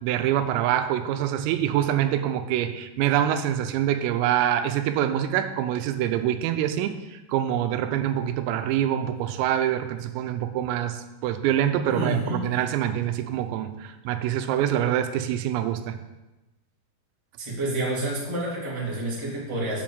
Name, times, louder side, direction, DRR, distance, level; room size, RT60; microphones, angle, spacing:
voice 1, 0.0-16.0, right 11 dB, 85° right, 9 dB, 3.4 m, -25 dB
voice 2, 11.9-12.4 17.4-19.8, right 1 dB, 10° right, -5 dB, 1.6 m, -28 dB
7.7 x 7.5 x 7.2 m, 1.1 s
omnidirectional pair, 5.9 m